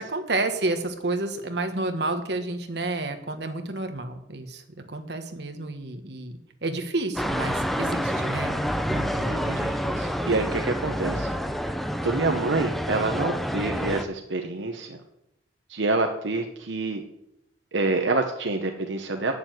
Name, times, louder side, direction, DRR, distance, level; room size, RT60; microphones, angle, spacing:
voice 1, 0.0-4.6 4.9-8.6 8.9-9.8, right 2 dB, 60° right, 6 dB, 1.3 m, -30 dB
sound 1, 7.2-14.0, equal, ahead, 0.5 m, -28 dB
voice 2, 7.9-8.6 9.2-11.3 12.0-15.0 15.7-17.0 17.7-19.3, right 3 dB, 80° right, 4 dB, 0.9 m, -27 dB
9.2 x 7.0 x 7.9 m, 0.81 s
head